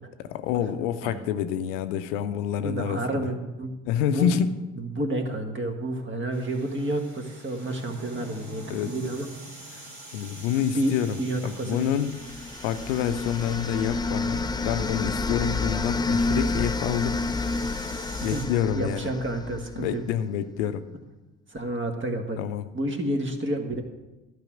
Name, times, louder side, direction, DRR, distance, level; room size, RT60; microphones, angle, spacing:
voice 1, 0.2-3.3 3.8-4.6 8.7-8.9 9.7-9.8 10.1-12.1 12.6-17.2 18.2-19.1 19.8-20.8 22.4-22.7, left 9 dB, 80° left, 10 dB, 0.6 m, -28 dB
voice 2, 2.6-3.7 4.1-4.3 4.8-9.3 10.6-11.9 18.2-20.0 21.5-22.4 22.7-23.8, right 1 dB, 30° right, 5 dB, 1.7 m, -30 dB
sound 1, 6.3-18.4, right 1 dB, 75° right, 3.5 m, -45 dB
sound 2, 11.9-19.9, left 3 dB, 10° left, 0.5 m, -29 dB
12.0 x 4.8 x 7.4 m, 1.1 s
hypercardioid pair, 50°, 37 cm